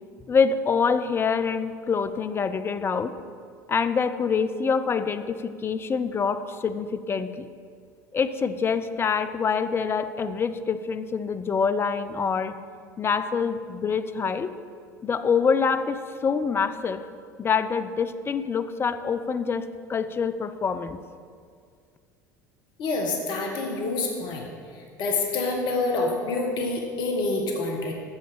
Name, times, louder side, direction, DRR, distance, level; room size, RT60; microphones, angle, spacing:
voice 1, 0.3-3.1 3.7-7.5 8.1-12.5 13.0-14.5 15.0-17.0 17.4-21.0, left 5 dB, 25° left, 11 dB, 0.5 m, -25 dB
voice 2, 22.8-24.5 25.0-27.9, left 3 dB, 50° left, 1 dB, 1.3 m, -27 dB
7.2 x 5.6 x 6.8 m, 2.1 s
figure-of-eight pair, 70°, 10 cm